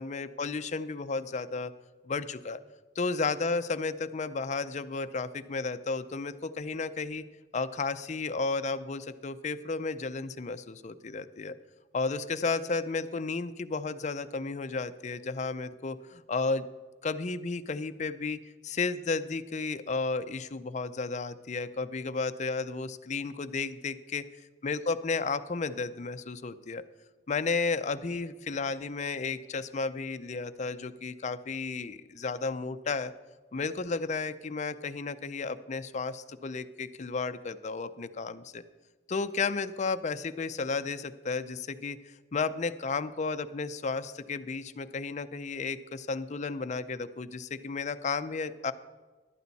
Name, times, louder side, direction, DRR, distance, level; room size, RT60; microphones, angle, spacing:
voice 1, 0.0-1.7 2.1-2.6 3.0-7.2 7.5-11.6 11.9-16.7 17.0-24.2 24.6-26.8 27.3-33.1 33.5-38.6 39.1-48.7, left 4 dB, 40° left, 11 dB, 0.5 m, -33 dB
14.0 x 12.0 x 4.1 m, 1.3 s
head